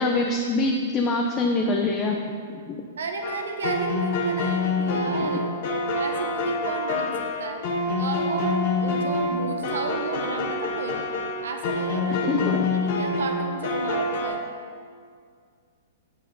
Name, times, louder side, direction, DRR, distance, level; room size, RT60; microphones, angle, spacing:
voice 1, 0.0-2.2 2.5-2.8 5.2-5.3 12.2-12.7, left 3 dB, 25° left, 1 dB, 0.7 m, -24 dB
voice 2, 3.0-5.5 5.9-7.6 8.0-8.5 8.8-11.0 11.4-12.2 12.7-14.4, right 4 dB, 85° right, 4 dB, 1.2 m, -32 dB
sound 1, 3.2-14.3, left 2 dB, 55° left, 1.5 m, -26 dB
8.5 x 6.4 x 5.4 m, 2.1 s
hypercardioid pair, 140°, 0 cm